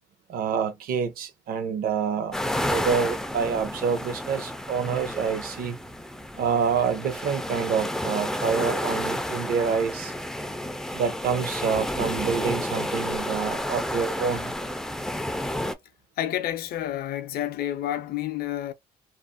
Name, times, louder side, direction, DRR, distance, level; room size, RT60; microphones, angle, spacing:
voice 1, 0.3-2.3 2.6-5.8 6.4-10.1 10.9-14.5, right 6 dB, 60° right, 0.7 m, -27 dB
sound 1, 2.3-15.8, left 1 dB, 5° left, 0.3 m, -31 dB
voice 2, 16.2-18.7, left 12 dB, 65° left, 0.5 m, -29 dB
2.5 x 2.1 x 2.4 m
cardioid pair, 110°, 17 cm